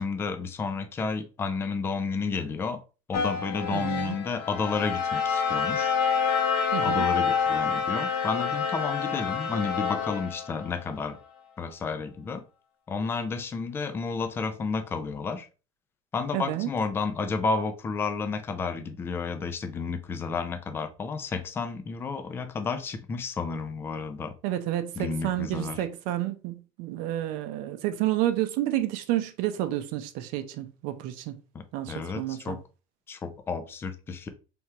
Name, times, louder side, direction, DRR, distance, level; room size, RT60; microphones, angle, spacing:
voice 1, 0.0-2.8 3.1-5.9 6.8-11.2 11.6-12.4 12.9-15.5 16.1-24.3 25.0-25.8 31.5-32.6 33.1-34.3, left 4 dB, 15° left, 0.4 m, -31 dB
sound 1, 3.1-11.2, left 6 dB, 80° left, 1.7 m, -28 dB
voice 2, 3.7-4.2 6.7-7.1 16.3-16.7 24.4-31.4 31.7-32.6, right 13 dB, 60° right, 0.6 m, -30 dB
4.4 x 3.5 x 2.8 m
cardioid pair, 170°, 16 cm